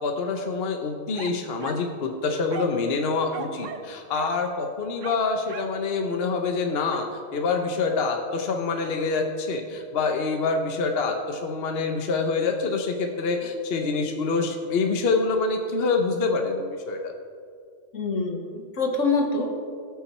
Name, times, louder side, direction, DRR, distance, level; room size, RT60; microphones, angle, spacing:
voice 1, 0.0-17.1, left 4 dB, 55° left, 3 dB, 1.0 m, -26 dB
sound 1, 1.1-1.9 2.5-2.8 3.3-4.4 5.0-5.8 6.9-7.1, right 6 dB, 85° right, 1.1 m, -38 dB
voice 2, 17.9-19.5, left 3 dB, 80° left, 3 dB, 1.6 m, -25 dB
17.5 x 6.0 x 4.3 m, 2.2 s
omnidirectional pair, 1.3 m